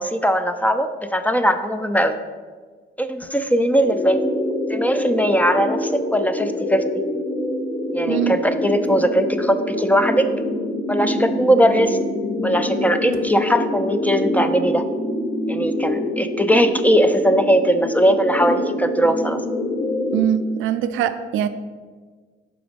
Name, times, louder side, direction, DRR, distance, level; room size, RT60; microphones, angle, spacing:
voice 1, 0.0-2.2 3.0-4.2 4.7-6.8 7.9-10.3 10.9-12.0 12.4-14.8 15.5-19.4, equal, 10° left, 9 dB, 0.4 m, -19 dB
sound 1, 3.8-20.2, left 1 dB, 60° left, 1.1 m, -26 dB
voice 2, 8.0-8.4 20.1-21.5, right 9 dB, 85° right, 11 dB, 0.4 m, -22 dB
6.0 x 3.9 x 5.1 m, 1.5 s
cardioid pair, 90°, 20 cm